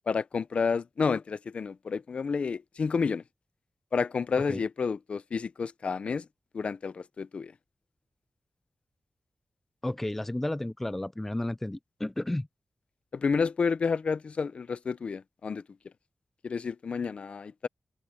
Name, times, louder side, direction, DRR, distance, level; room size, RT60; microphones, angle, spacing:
voice 1, 0.1-3.2 3.9-6.3 6.5-7.5 13.1-15.6 16.4-17.7, left 5 dB, 55° left, 0.6 m, -30 dB
voice 2, 9.8-12.5, left 1 dB, 10° left, 0.4 m, -32 dB
wide cardioid pair, 165°, 2 cm